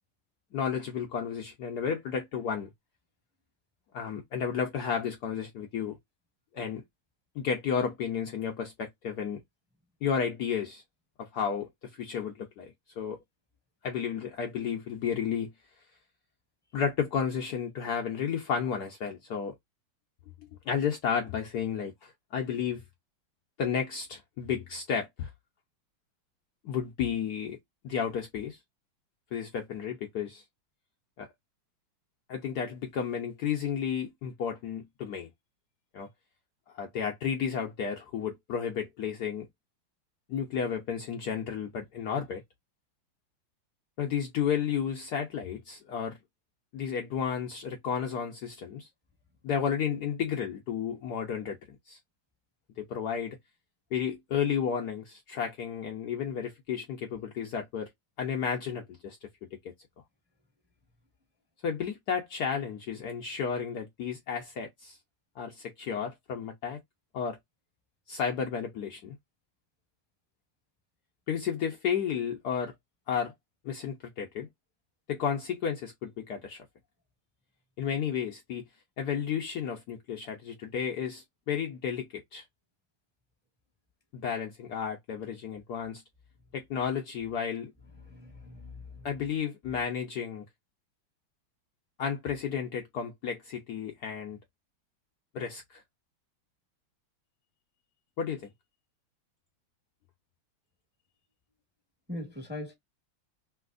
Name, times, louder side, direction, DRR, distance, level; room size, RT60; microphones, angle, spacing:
voice 1, 0.5-2.7 3.9-6.0 6.5-6.8 7.3-9.4 10.0-10.8 11.2-13.2 13.8-15.5 16.7-19.5 20.6-22.8 23.6-25.3 26.6-27.6 27.8-28.6 29.3-30.4 31.2-31.3 32.3-35.3 35.9-36.1 36.7-39.5 40.3-42.4 44.0-46.2 46.7-48.9 49.4-51.6 51.9-52.0 52.8-53.4 53.9-57.9 58.2-59.2 61.6-65.0 65.4-66.8 67.1-67.4 68.1-69.2 71.3-72.7 73.1-73.3 73.6-74.5 75.1-76.6 77.8-78.6 79.0-82.4 84.1-86.0 86.5-87.7 89.0-90.5 92.0-94.4 95.3-95.8 98.2-98.5, left 7 dB, 70° left, 1.0 m, -32 dB
voice 2, 88.0-89.1 102.1-102.7, left 1 dB, 5° right, 0.9 m, -41 dB
3.3 x 2.8 x 2.4 m
omnidirectional pair, 2.2 m